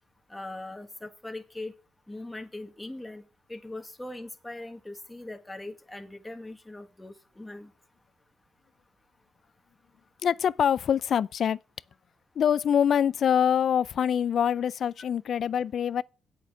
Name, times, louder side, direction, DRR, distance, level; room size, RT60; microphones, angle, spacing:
voice 1, 0.3-1.7 2.1-3.2 3.5-7.7, left 2 dB, 10° left, 1.7 m, -40 dB
voice 2, 10.2-11.6 12.4-16.0, left 8 dB, 60° left, 0.4 m, -24 dB
8.3 x 6.4 x 7.3 m
cardioid pair, 90°, 0 cm